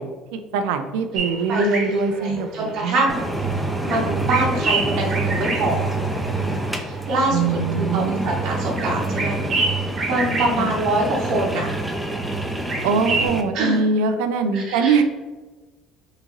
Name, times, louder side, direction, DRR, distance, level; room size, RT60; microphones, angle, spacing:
voice 1, 0.0-3.1 7.3-8.4 10.6-10.7 12.8-15.0, right 4 dB, 90° right, 7 dB, 0.4 m, -23 dB
sound 1, 1.1-3.5 3.8-6.6 6.9-11.9 12.1-13.3, right 3 dB, 40° right, 0.9 m, -28 dB
voice 2, 1.5-6.0 6.3-9.4 10.0-11.7 13.5-13.8 14.5-15.0, right 2 dB, 65° right, -3 dB, 0.9 m, -25 dB
sound 2, 3.1-13.4, right 2 dB, ahead, 0.5 m, -27 dB
3.7 x 2.6 x 3.0 m, 1.3 s
cardioid pair, 110°, 0 cm